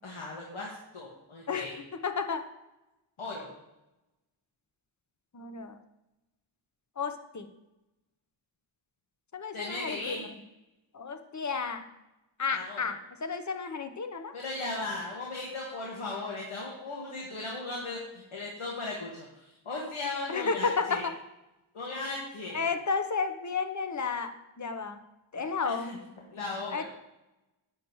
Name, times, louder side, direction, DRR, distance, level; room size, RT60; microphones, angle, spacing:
voice 1, 0.0-1.8 3.2-3.5 9.5-10.2 12.5-12.8 14.3-21.0 21.7-22.6 25.3-26.0 26.3-26.8, left 2 dB, 80° left, -3 dB, 2.0 m, -37 dB
voice 2, 2.0-2.4 5.3-5.8 7.0-7.5 9.3-10.3 10.9-11.8 12.4-14.3 20.3-21.1 22.5-24.3 24.6-25.0 25.3-26.0 26.7-26.8, left 5 dB, 35° left, 8 dB, 0.9 m, -32 dB
11.0 x 8.9 x 3.1 m, 0.94 s
wide cardioid pair, 95°, 50 cm